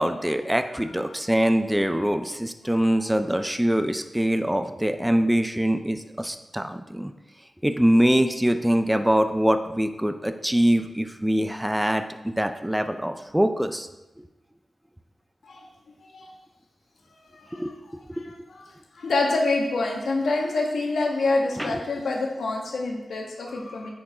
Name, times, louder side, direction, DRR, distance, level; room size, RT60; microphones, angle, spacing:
voice 1, 0.0-7.1 7.6-13.9 17.5-17.7 21.6-21.8, equal, 5° right, 8 dB, 0.5 m, -23 dB
voice 2, 0.8-1.2 2.7-2.8 15.4-15.7 16.1-16.3 17.3-17.7 18.1-18.7 18.9-23.9, left 3 dB, 85° left, 0 dB, 1.3 m, -27 dB
9.4 x 4.7 x 4.8 m, 1.0 s
wide cardioid pair, 85°, 0 cm